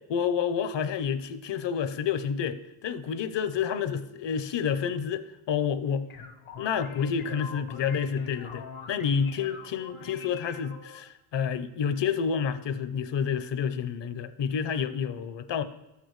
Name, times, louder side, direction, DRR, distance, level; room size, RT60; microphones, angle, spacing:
voice 1, 0.1-6.1 6.6-15.6, left 7 dB, 60° left, 12 dB, 0.7 m, -29 dB
sound 1, 5.8-11.1, left 6 dB, 85° left, 1.1 m, -44 dB
12.5 x 8.5 x 3.1 m, 0.96 s
wide cardioid pair, 115°, 48 cm